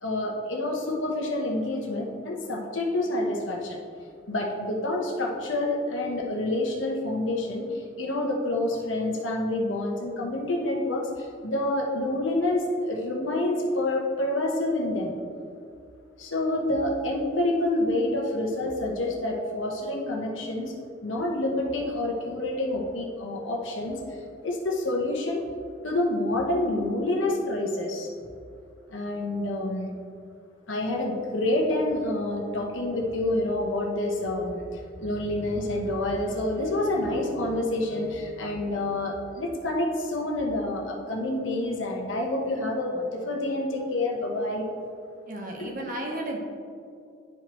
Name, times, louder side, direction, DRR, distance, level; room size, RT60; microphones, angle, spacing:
voice 1, 0.0-3.8 4.3-7.7 8.0-15.1 16.2-20.7 21.0-24.0 24.4-25.4 25.8-28.1 28.9-29.9 30.7-34.6 35.0-44.6 45.6-45.7, left 1 dB, 85° left, 0 dB, 1.1 m, -28 dB
voice 2, 45.3-46.4, right 1 dB, 45° right, 1 dB, 1.0 m, -33 dB
11.0 x 4.6 x 3.1 m, 2.4 s
head